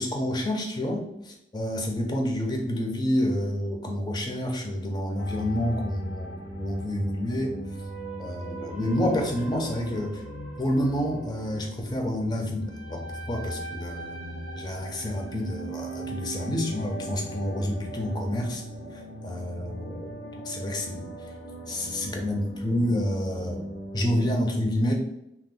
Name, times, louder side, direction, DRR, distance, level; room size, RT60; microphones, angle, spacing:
voice 1, 0.0-6.3 6.6-7.6 8.2-10.2 10.6-13.0 13.3-18.6 18.9-20.2 20.4-21.1 21.7-23.7 23.9-24.9, left 1 dB, 25° left, 2 dB, 0.5 m, -29 dB
sound 1, 5.2-24.3, right 1 dB, 80° left, 0.7 m, -39 dB
2.8 x 2.0 x 3.7 m, 0.81 s
head